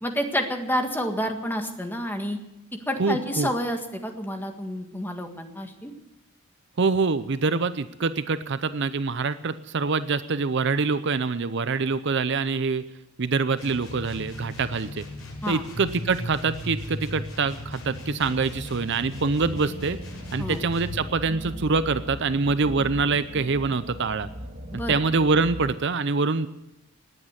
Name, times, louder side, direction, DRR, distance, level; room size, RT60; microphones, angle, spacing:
voice 1, 0.0-2.4 2.9-5.9 15.4-15.6 20.4-20.6 24.7-24.9, equal, 10° left, 4 dB, 1.7 m, -29 dB
voice 2, 3.0-3.5 6.8-12.8 13.2-15.0 15.5-20.0 20.3-24.3 24.7-26.5, right 4 dB, 55° right, 13 dB, 0.6 m, -25 dB
sound 1, 13.6-21.1, left 1 dB, 85° left, 7.5 m, -37 dB
sound 2, 18.2-25.7, equal, 40° right, 2.2 m, -39 dB
19.5 x 8.9 x 8.1 m, 0.93 s
head